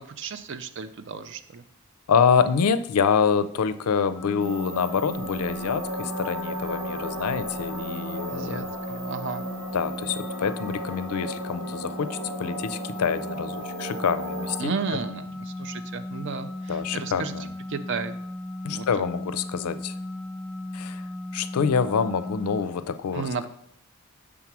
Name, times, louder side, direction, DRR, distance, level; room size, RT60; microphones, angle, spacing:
voice 1, 0.0-1.6 8.3-9.4 14.6-17.3 17.7-18.2 18.7-19.1 23.1-23.5, right 5 dB, 55° right, 11 dB, 0.4 m, -33 dB
voice 2, 2.1-8.7 9.7-15.0 16.7-17.5 18.6-19.9 20.7-21.0 21.3-23.5, left 6 dB, 85° left, 13 dB, 0.4 m, -26 dB
sound 1, 4.1-22.6, left 1 dB, 15° left, 0.7 m, -37 dB
sound 2, 4.4-14.6, right 1 dB, 85° right, 1.1 m, -35 dB
5.9 x 3.7 x 5.9 m, 0.73 s
head